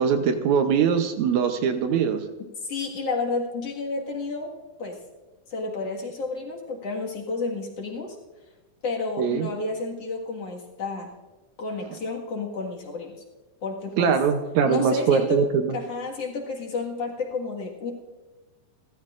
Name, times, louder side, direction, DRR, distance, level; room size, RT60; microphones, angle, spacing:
voice 1, 0.0-2.2 9.2-9.5 14.0-15.7, right 6 dB, 75° right, 7 dB, 2.1 m, -22 dB
voice 2, 2.6-4.5 4.8-5.0 5.5-8.2 8.8-11.1 11.6-13.1 13.6-14.2 14.6-15.4 15.7-17.9, left 3 dB, 55° left, -1 dB, 2.7 m, -31 dB
29.0 x 13.0 x 2.5 m, 1.2 s
omnidirectional pair, 3.5 m